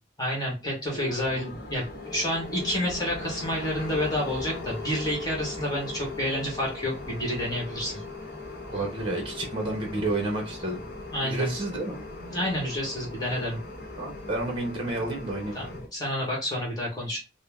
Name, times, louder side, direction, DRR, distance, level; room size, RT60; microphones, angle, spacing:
voice 1, 0.2-8.0 11.1-11.6 12.2-13.6 15.5-17.2, left 1 dB, 20° left, -3 dB, 1.3 m, -29 dB
sound 1, 0.9-15.9, left 2 dB, 55° left, 1.0 m, -39 dB
voice 2, 8.7-10.8 11.2-12.0 14.0-15.5, right 2 dB, 30° right, 0 dB, 1.0 m, -30 dB
3.7 x 2.1 x 3.5 m, 0.28 s
head